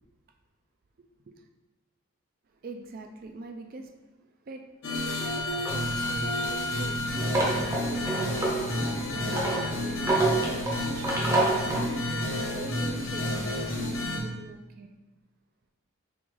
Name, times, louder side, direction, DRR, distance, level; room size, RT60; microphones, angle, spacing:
voice 1, 2.6-3.9 4.5-4.7 4.9-5.3 5.7-9.4 9.9-14.9, right 3 dB, 40° right, 0.3 m, -42 dB
sound 1, 4.8-14.2, left 1 dB, 60° left, 0.9 m, -30 dB
sound 2, 5.7-11.9, right 2 dB, 15° right, 0.7 m, -29 dB
6.0 x 2.4 x 3.2 m
head